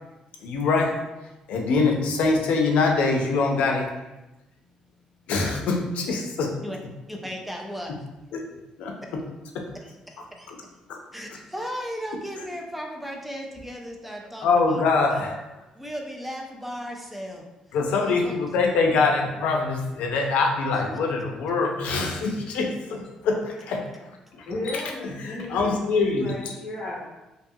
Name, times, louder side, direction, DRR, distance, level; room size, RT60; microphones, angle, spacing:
voice 1, 0.4-1.0 1.5-3.9 5.3-6.6 8.3-8.5 8.8-9.0 9.5-9.7 10.5-10.6 10.9-11.0 14.4-15.4 17.7-23.8 24.3-26.5, left 4 dB, 85° left, 1 dB, 0.4 m, -24 dB
voice 2, 7.1-8.1 9.0-9.1 9.7-10.5 11.1-14.8 15.1-15.2 15.8-17.5 18.1-18.4 20.7-20.8, equal, 5° right, 1 dB, 0.3 m, -36 dB
voice 3, 24.5-27.0, left 2 dB, 40° left, -8 dB, 0.7 m, -35 dB
2.7 x 2.3 x 2.6 m, 1.0 s
cardioid pair, 165°, 2 cm